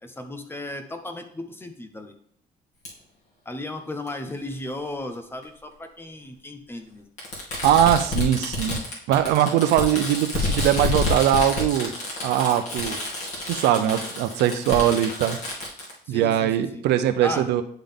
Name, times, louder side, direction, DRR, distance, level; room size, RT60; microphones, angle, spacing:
voice 1, 0.0-2.2 3.4-7.1 16.1-16.8 17.2-17.5, left 1 dB, 15° left, 6 dB, 0.9 m, -35 dB
Fireworks, 2.8-2.9 4.1-4.2 5.4-5.5 7.2-15.9, left 3 dB, 45° left, 2.4 m, -29 dB
voice 2, 7.6-8.8 9.1-11.9 12.2-13.0 13.5-15.4 16.1-17.6, right 11 dB, 85° right, 9 dB, 0.6 m, -21 dB
10.0 x 3.8 x 3.6 m, 0.63 s
cardioid pair, 110°, 17 cm